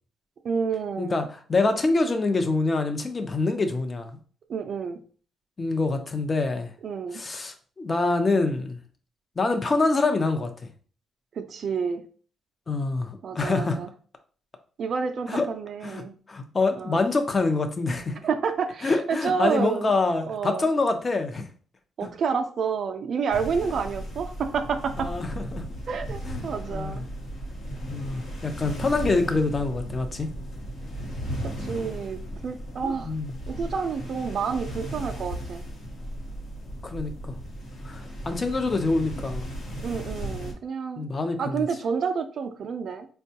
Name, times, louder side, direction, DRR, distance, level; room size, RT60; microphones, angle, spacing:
voice 1, 0.4-1.2 4.5-5.0 6.8-7.2 11.3-12.0 13.2-13.9 14.8-16.1 16.8-17.0 18.2-19.9 20.3-20.7 22.0-25.1 25.9-27.0 31.4-33.1 33.5-35.6 39.8-41.1 41.4-43.1, right 6 dB, 55° right, 7 dB, 0.3 m, -29 dB
voice 2, 1.0-4.2 5.6-6.7 7.1-8.8 9.4-10.7 12.7-13.8 15.3-15.5 15.8-18.2 18.8-21.4 22.0-22.1 25.0-25.6 26.2-27.1 27.9-30.3 32.8-33.3 36.8-37.3 37.8-39.5 41.0-41.7, left 3 dB, 30° left, 7 dB, 0.6 m, -26 dB
sound 1, 23.3-40.5, equal, 70° left, 1.0 m, -36 dB
4.3 x 2.2 x 2.8 m, 0.42 s
cardioid pair, 90°, 0 cm